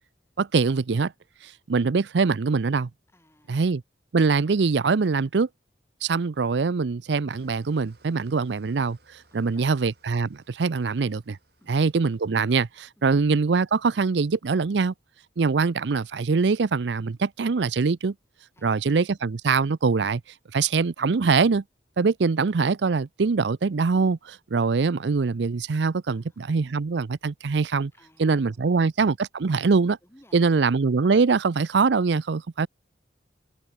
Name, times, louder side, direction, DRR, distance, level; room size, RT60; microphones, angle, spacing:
voice 1, 0.4-1.1 1.4-2.9 3.5-3.8 4.1-5.5 6.0-11.4 11.7-14.9 15.4-18.1 18.6-20.2 20.5-21.6 22.0-27.9 28.2-30.0 30.3-32.7, right 4 dB, 75° right, 0.5 m, -23 dB
voice 2, 3.1-3.6 9.3-9.8 11.6-11.8 13.0-13.2 18.5-19.1 20.6-20.7 26.1-26.5 27.9-28.9 30.0-30.6, left 1 dB, 15° left, 5.8 m, -60 dB
Engine starting / Idling, 7.3-12.7, right 2 dB, 60° right, 5.8 m, -62 dB
head